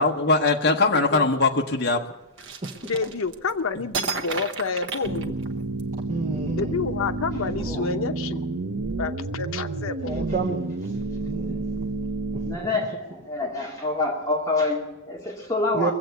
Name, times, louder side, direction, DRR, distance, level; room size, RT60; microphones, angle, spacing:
voice 1, 0.0-2.0, left 3 dB, 55° left, 3 dB, 1.0 m, -21 dB
voice 2, 0.7-1.3 2.8-5.3 6.6-8.5 9.0-10.3, left 4 dB, 85° left, 9 dB, 0.8 m, -29 dB
sound 1, 2.4-3.5 3.9-5.8, right 4 dB, 60° right, 1.1 m, -32 dB
sound 2, 5.0-12.6, right 2 dB, 85° right, 0.8 m, -30 dB
voice 3, 6.1-6.8 10.1-10.6 11.2-11.9 12.3-12.4 15.7-15.9, right 4 dB, 35° right, 3 dB, 1.0 m, -29 dB
voice 4, 12.4-15.9, left 2 dB, 15° left, -2 dB, 2.2 m, -27 dB
21.5 x 8.1 x 8.0 m, 0.99 s
head